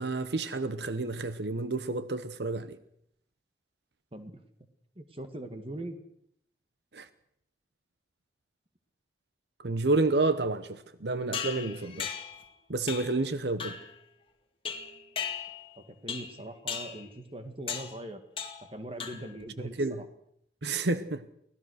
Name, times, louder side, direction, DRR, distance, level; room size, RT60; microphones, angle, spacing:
voice 1, 0.0-2.8 6.9-7.1 9.6-12.1 12.7-13.8 19.6-20.0 20.6-21.2, right 3 dB, 80° right, 1.0 m, -30 dB
voice 2, 5.0-6.0 15.8-18.2 18.7-20.0, right 1 dB, 30° right, 2.0 m, -41 dB
sound 1, 11.3-12.5 12.9-13.2 13.6-13.9 14.7-15.7 16.1-16.4 16.7-17.0 17.7-18.0 18.4-18.7 19.0-19.4, left 7 dB, 30° left, 2.1 m, -37 dB
24.5 x 17.5 x 6.5 m
head